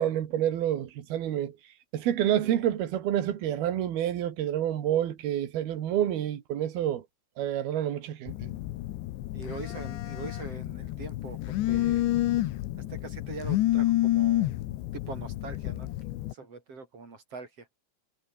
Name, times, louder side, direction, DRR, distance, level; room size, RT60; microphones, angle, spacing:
voice 1, 0.0-1.6 1.9-7.0 7.4-8.5, right 11 dB, 65° right, 3.9 m, -28 dB
Telephone, 8.3-16.3, left 15 dB, 85° left, 3.5 m, -29 dB
voice 2, 9.3-12.1 12.9-14.5 14.9-15.9 16.3-17.7, right 4 dB, 35° right, 6.7 m, -42 dB
omnidirectional pair, 5.0 m